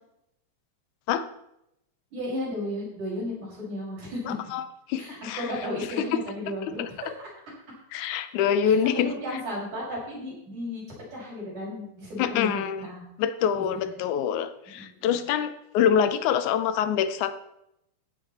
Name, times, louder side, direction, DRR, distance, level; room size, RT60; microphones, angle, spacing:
voice 1, 2.1-4.2 5.0-7.1 8.6-10.8 11.1-13.1 13.6-13.9 14.7-15.2, left 1 dB, 85° right, -6 dB, 7.2 m, -34 dB
voice 2, 4.3-5.5 6.6-6.9 7.9-9.1 12.2-12.8 13.2-17.3, left 8 dB, 80° left, 12 dB, 2.2 m, -25 dB
16.0 x 7.6 x 4.3 m, 0.83 s
omnidirectional pair, 3.5 m